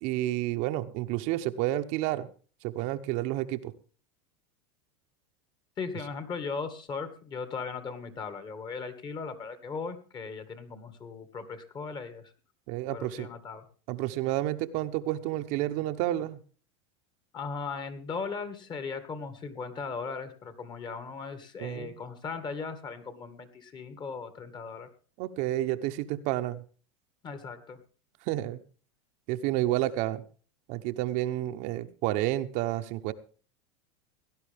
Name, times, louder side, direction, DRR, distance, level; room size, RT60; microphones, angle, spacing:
voice 1, 0.0-2.3 2.6-3.7 12.7-13.3 13.9-16.4 21.6-22.0 25.2-26.6 28.3-28.6 29.3-30.2 30.7-33.1, right 15 dB, 55° right, 8 dB, 0.9 m, -30 dB
voice 2, 5.8-12.3 12.9-13.6 17.3-24.9 27.2-27.8, left 5 dB, 30° left, 11 dB, 2.0 m, -38 dB
17.5 x 11.5 x 3.5 m, 0.39 s
supercardioid pair, 125°, 15 cm